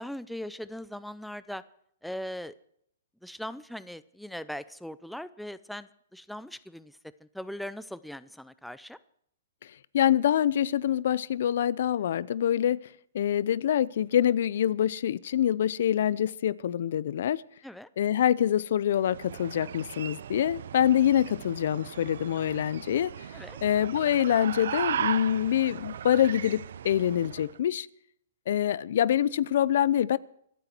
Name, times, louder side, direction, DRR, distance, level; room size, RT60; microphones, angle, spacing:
voice 1, 0.0-1.6 2.0-2.5 3.2-9.0 17.6-17.9 23.3-23.6, equal, ahead, 15 dB, 0.5 m, -40 dB
voice 2, 9.9-12.8 13.1-17.4 18.0-23.1 23.6-27.9 28.5-30.2, left 10 dB, 60° left, 21 dB, 0.6 m, -25 dB
sound 1, 18.9-27.6, right 9 dB, 70° right, 0.6 m, -37 dB
26.0 x 9.1 x 4.5 m, 0.68 s
hypercardioid pair, 155°, 0 cm